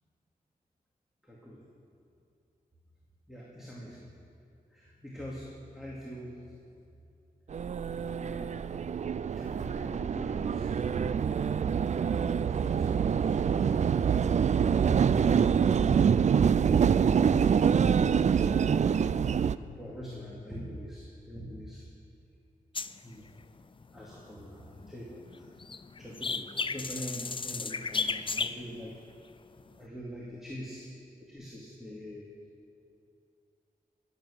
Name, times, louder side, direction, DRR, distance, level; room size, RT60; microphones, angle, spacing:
voice 1, 1.2-1.7 3.3-4.1 4.7-6.5 8.1-8.6 9.3-13.9 15.2-16.3 16.7-19.1 19.8-21.8 23.0-23.3 23.9-25.5 26.0-29.0 29.8-30.9 31.3-32.3, equal, ahead, -5 dB, 2.5 m, -44 dB
sound 1, 7.5-19.6, right 7 dB, 50° right, 0.4 m, -25 dB
sound 2, 19.4-20.5, left 5 dB, 75° left, 0.7 m, -51 dB
sound 3, 22.7-25.0 25.3-29.0 29.6-29.7, left 4 dB, 35° left, 0.5 m, -35 dB
21.5 x 8.2 x 6.6 m, 2.6 s
wide cardioid pair, 85°, 16 cm